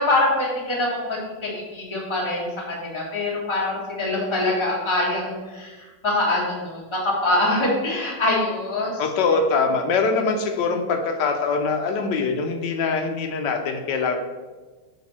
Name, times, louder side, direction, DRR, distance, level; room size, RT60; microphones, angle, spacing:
voice 1, 0.0-9.0, left 2 dB, 15° left, -4 dB, 1.3 m, -24 dB
voice 2, 9.0-14.2, left 4 dB, 70° left, 5 dB, 1.2 m, -23 dB
9.0 x 3.5 x 4.2 m, 1.3 s
omnidirectional pair, 2.3 m